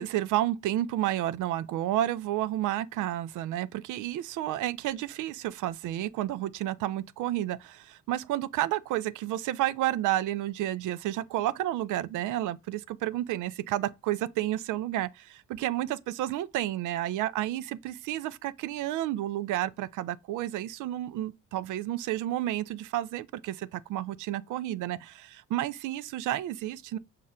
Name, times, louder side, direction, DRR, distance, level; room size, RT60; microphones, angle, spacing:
voice 1, 0.0-27.0, right 14 dB, 80° right, 0.4 m, -31 dB
5.6 x 2.1 x 3.6 m
cardioid pair, 90°, 30 cm